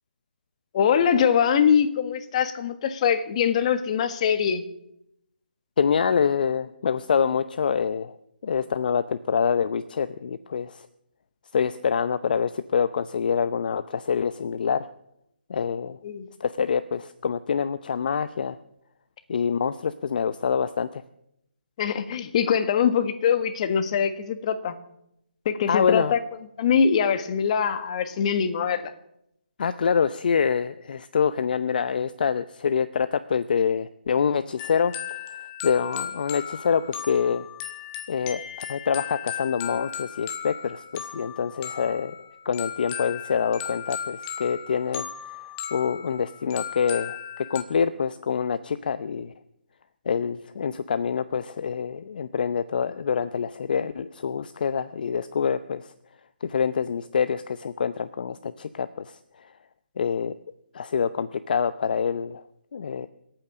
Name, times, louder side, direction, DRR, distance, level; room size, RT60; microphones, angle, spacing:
voice 1, 0.7-4.6 16.0-16.3 21.8-24.8 25.4-26.2 26.6-28.9, left 7 dB, 40° left, 10 dB, 1.5 m, -23 dB
voice 2, 5.8-8.2 8.4-10.9 11.5-14.9 15.5-16.0 16.4-18.6 19.3-21.0 25.7-26.1 29.6-35.4 35.6-37.5 38.1-42.2 42.4-45.1 45.4-47.2 47.5-49.3 50.1-55.9 56.4-59.5 60.0-60.3 60.7-62.4 62.7-63.1, left 6 dB, 55° left, 13 dB, 0.7 m, -26 dB
sound 1, 34.6-47.6, left 9 dB, 25° left, 1.5 m, -36 dB
25.5 x 9.0 x 6.2 m, 0.80 s
figure-of-eight pair, 150°, 6 cm